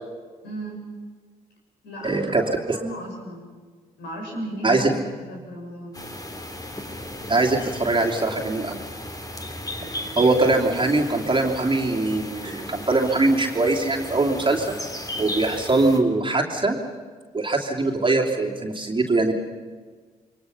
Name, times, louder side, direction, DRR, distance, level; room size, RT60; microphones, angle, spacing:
voice 1, 0.4-0.8 1.8-3.5 4.0-4.9 5.3-6.0 9.8-10.2, right 1 dB, 65° left, 0 dB, 6.4 m, -35 dB
voice 2, 2.0-2.8 4.6-5.0 7.3-8.8 10.2-14.8 15.2-16.8 17.3-19.3, right 2 dB, 25° right, 1 dB, 2.9 m, -22 dB
sound 1, 5.9-16.0, left 1 dB, 20° left, 3.0 m, -35 dB
28.0 x 23.0 x 5.8 m, 1.5 s
figure-of-eight pair, 40°, 19 cm